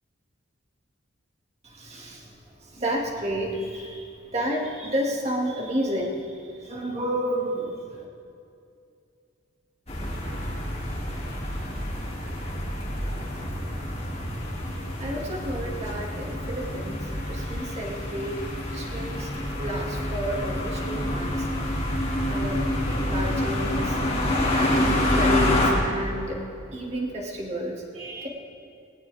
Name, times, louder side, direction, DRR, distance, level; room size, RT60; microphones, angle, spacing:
voice 1, 1.6-2.2 2.7-4.1 4.3-6.2 6.6-8.0 15.0-18.4 18.7-21.5 22.3-22.7 23.0-24.0 24.5-26.4 26.7-28.3, equal, 30° right, -1 dB, 2.2 m, -31 dB
sound 1, 9.9-25.7, left 1 dB, 30° left, 2.5 m, -27 dB
19.0 x 18.0 x 3.5 m, 2.5 s
head